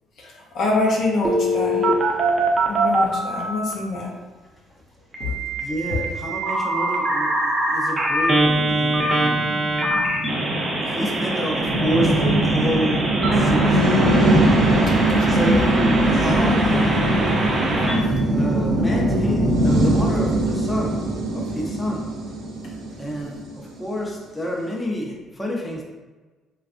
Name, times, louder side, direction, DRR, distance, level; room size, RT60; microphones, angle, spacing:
voice 1, 0.2-1.9 2.7-4.1 5.2-5.3, left 2 dB, 65° left, -2 dB, 0.7 m, -25 dB
Telephone, 1.2-3.7 5.1-18.0, right 1 dB, 35° right, 0.6 m, -23 dB
voice 2, 5.6-9.5 10.8-14.0 15.3-17.0 17.8-21.0 21.3-22.1 23.0-25.8, equal, 15° left, -3 dB, 0.7 m, -29 dB
sound 1, 8.3-23.8, right 1 dB, 75° right, 0.6 m, -22 dB
3.2 x 2.4 x 2.5 m, 1.3 s
supercardioid pair, 70°, 0 cm